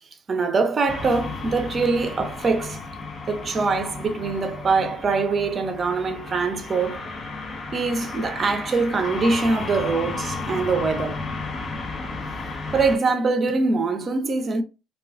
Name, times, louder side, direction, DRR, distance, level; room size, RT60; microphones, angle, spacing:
voice 1, 0.3-2.8 3.3-7.0 7.7-11.2 12.7-14.6, right 4 dB, 40° right, 0.6 m, -23 dB
sound 1, 0.9-13.0, left 3 dB, 35° left, 0.5 m, -33 dB
2.3 x 2.3 x 2.4 m
hypercardioid pair, 70°, 0 cm